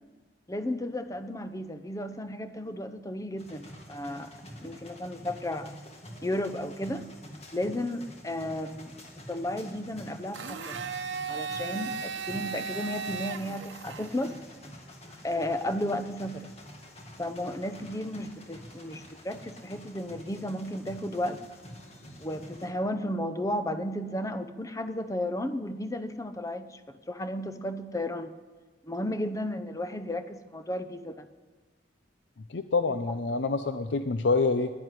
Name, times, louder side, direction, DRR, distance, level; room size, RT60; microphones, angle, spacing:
voice 1, 0.5-4.3 4.6-5.7 6.2-7.0 7.5-8.9 9.3-10.8 11.3-14.4 15.2-16.5 17.2-21.4 22.2-28.3 28.8-31.3 32.9-33.0, left 1 dB, 20° left, 10 dB, 0.7 m, -33 dB
sound 1, 3.4-22.7, equal, 35° left, 2.0 m, -48 dB
Domestic sounds home sounds, 10.3-14.4, right 5 dB, 90° right, 0.9 m, -36 dB
voice 2, 32.5-34.7, left 3 dB, 75° left, 9 dB, 0.6 m, -26 dB
10.5 x 10.5 x 9.7 m, 1.3 s
head